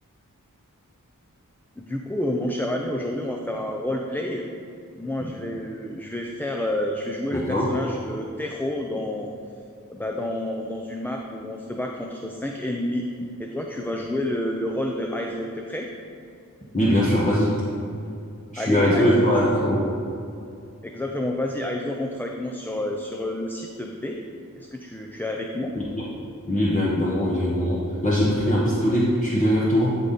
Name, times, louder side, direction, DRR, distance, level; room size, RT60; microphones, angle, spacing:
voice 1, 1.8-4.5 5.0-9.3 9.9-13.1 13.4-15.9 18.6-19.5 20.8-24.2 24.6-25.8, left 1 dB, 5° left, 0 dB, 0.5 m, -29 dB
voice 2, 7.3-7.7 16.7-17.5 18.5-19.8 25.7-26.0 26.5-30.0, equal, 25° left, -6 dB, 1.1 m, -21 dB
11.5 x 3.9 x 4.1 m, 2.5 s
wide cardioid pair, 40°, 32 cm